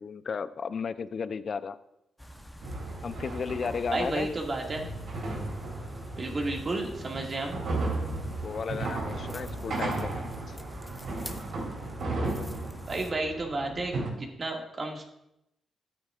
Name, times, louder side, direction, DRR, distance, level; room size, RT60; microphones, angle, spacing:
voice 1, 0.0-1.8 3.0-4.3 8.1-10.6, left 5 dB, 55° left, 13 dB, 0.5 m, -34 dB
sound 1, 2.2-13.1, equal, 5° left, 0.8 m, -47 dB
sound 2, 2.6-14.1, right 2 dB, 75° right, 2.9 m, -35 dB
voice 2, 3.9-4.9 6.2-7.6 12.9-15.0, right 2 dB, 40° right, 1 dB, 2.0 m, -32 dB
13.5 x 9.1 x 2.4 m, 0.84 s
cardioid pair, 90°, 0 cm